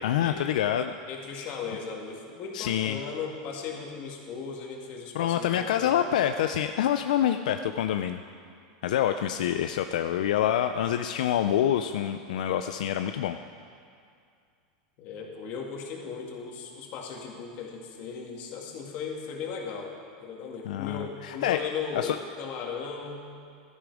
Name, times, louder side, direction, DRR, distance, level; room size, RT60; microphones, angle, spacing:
voice 1, 0.0-1.0 2.5-3.0 5.1-8.2 8.8-13.4 20.7-21.6 21.9-22.2, left 10 dB, 80° left, 8 dB, 0.5 m, -26 dB
voice 2, 1.1-6.0 15.0-23.3, left 5 dB, 45° left, 0 dB, 2.3 m, -37 dB
16.0 x 13.0 x 4.9 m, 2.3 s
supercardioid pair, 150°, 4 cm